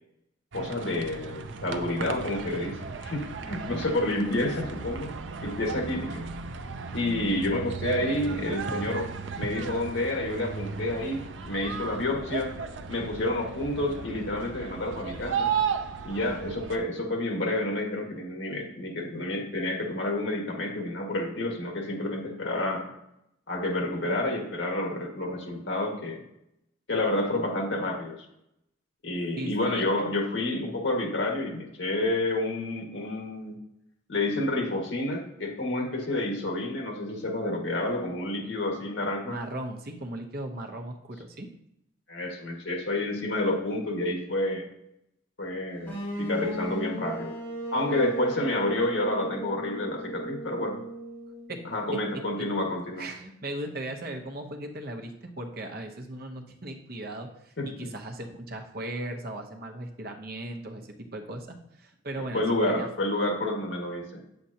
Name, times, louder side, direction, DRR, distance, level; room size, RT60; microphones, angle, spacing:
voice 1, 0.5-5.1 5.4-6.2 6.9-9.1 9.4-12.5 12.9-15.5 16.0-22.9 23.5-26.2 26.9-28.2 29.0-33.6 34.1-39.4 42.1-44.6 45.4-47.3 47.7-50.8 51.7-53.1 57.6-57.9 62.3-64.2, left 1 dB, 75° left, 1 dB, 1.9 m, -29 dB
sound 1, 0.5-16.8, right 6 dB, 75° right, 0.5 m, -35 dB
voice 2, 29.4-29.8 39.3-41.5 51.5-51.7 52.4-62.9, right 1 dB, 55° right, 3 dB, 1.0 m, -38 dB
sound 2, 45.8-51.7, right 1 dB, 15° left, 2.8 m, -36 dB
8.9 x 7.7 x 2.8 m, 0.82 s
head